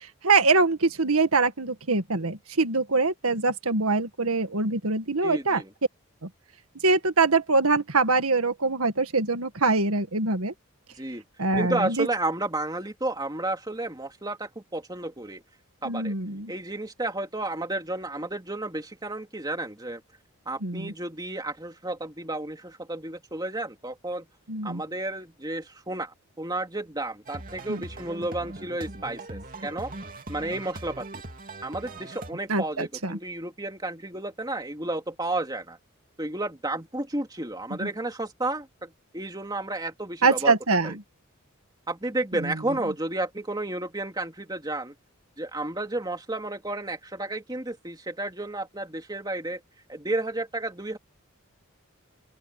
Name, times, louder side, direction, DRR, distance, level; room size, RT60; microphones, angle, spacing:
voice 1, 0.2-5.6 6.2-6.3 6.8-10.5 11.4-12.1 15.8-16.5 20.6-20.9 24.5-24.8 27.7-27.8 32.5-33.2 37.8-37.9 40.2-41.0 42.3-42.5, right 3 dB, 80° right, 1.9 m, -24 dB
voice 2, 5.2-5.7 11.0-11.2 11.6-15.4 15.8-16.1 16.5-20.0 20.5-24.2 24.6-29.9 30.3-31.2 31.6-35.8 36.2-40.5 40.8-41.0 41.9-44.9 45.4-49.6 49.9-51.0, right 2 dB, 20° right, 3.0 m, -32 dB
sound 1, 27.3-32.3, right 2 dB, 40° right, 2.8 m, -40 dB
open air
head